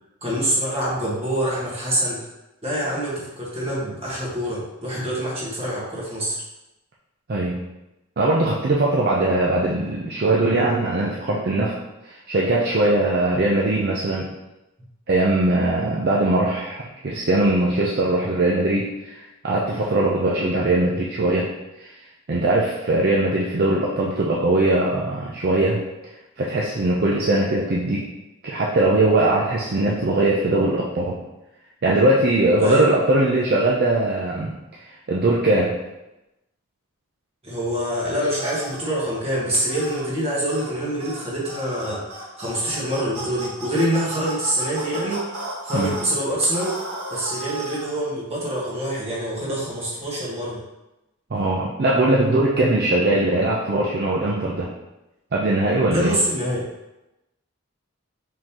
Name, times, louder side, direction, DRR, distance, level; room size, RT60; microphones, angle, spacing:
voice 1, 0.2-2.2 2.6-6.4 32.6-32.8 37.4-45.2 45.6-46.7 47.1-50.6 55.8-56.6, right 1 dB, 25° right, -6 dB, 1.4 m, -25 dB
voice 2, 7.3-7.7 8.2-11.7 12.0-14.3 15.1-21.5 21.8-21.9 22.3-25.8 26.4-28.1 28.4-31.2 31.8-34.6 35.1-35.8 45.7-45.9 51.3-54.7 55.3-56.2, right 2 dB, 45° right, -3 dB, 0.5 m, -20 dB
sound 1, 38.4-38.9 39.7-40.1 40.5-40.7 41.0-41.2 41.5-46.1 46.5-48.0, right 2 dB, 80° right, 1.2 m, -34 dB
5.0 x 3.7 x 2.9 m, 0.97 s
head